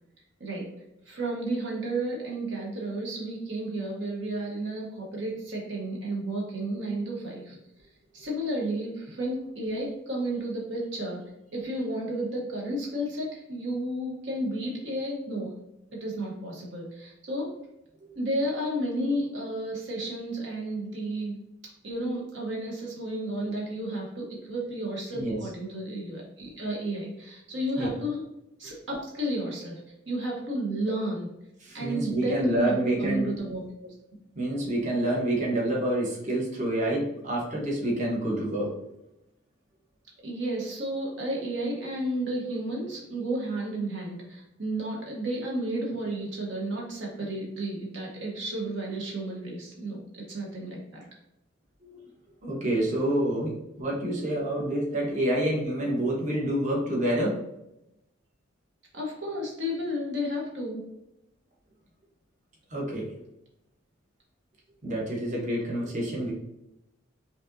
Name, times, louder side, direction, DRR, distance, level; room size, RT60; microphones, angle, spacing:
voice 1, 1.0-7.6 8.1-11.2 11.5-15.5 15.9-17.5 18.1-21.4 21.8-28.2 28.6-29.8 30.1-31.3 31.7-33.6 40.2-51.0 58.9-60.8, right 1 dB, 65° right, -2 dB, 1.0 m, -32 dB
voice 2, 31.6-33.3 34.3-38.7 51.8-52.0 52.4-57.4 62.7-63.1 64.8-66.3, right 1 dB, 40° right, -4 dB, 1.1 m, -28 dB
5.0 x 2.7 x 2.6 m, 0.85 s
head